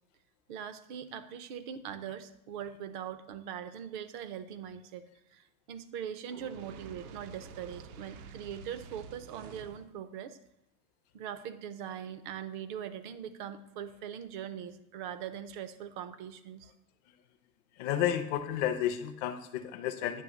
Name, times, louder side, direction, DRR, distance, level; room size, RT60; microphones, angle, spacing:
voice 1, 0.5-5.0 5.3-10.4 11.1-16.7, right 9 dB, 35° right, 12 dB, 0.4 m, -41 dB
Fire, 6.3-9.9, right 6 dB, 75° right, 0.7 m, -49 dB
voice 2, 17.7-20.2, left 10 dB, 30° left, 7 dB, 0.4 m, -31 dB
9.3 x 3.1 x 6.2 m, 0.83 s
supercardioid pair, 160°, 43 cm